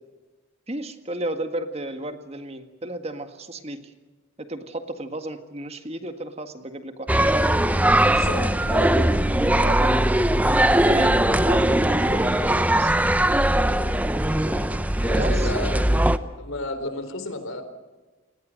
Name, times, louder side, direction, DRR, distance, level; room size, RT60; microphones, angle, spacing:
voice 1, 0.7-3.9 4.4-7.1 9.6-10.0 10.6-12.9 15.1-15.5, right 1 dB, 30° right, 7 dB, 1.8 m, -33 dB
sound 1, 7.1-16.2, right 1 dB, 5° right, 0.7 m, -20 dB
voice 2, 8.0-9.1 14.5-14.7 15.0-15.8 16.4-17.6, left 2 dB, 85° left, 9 dB, 4.1 m, -32 dB
29.5 x 19.5 x 6.5 m, 1.3 s
head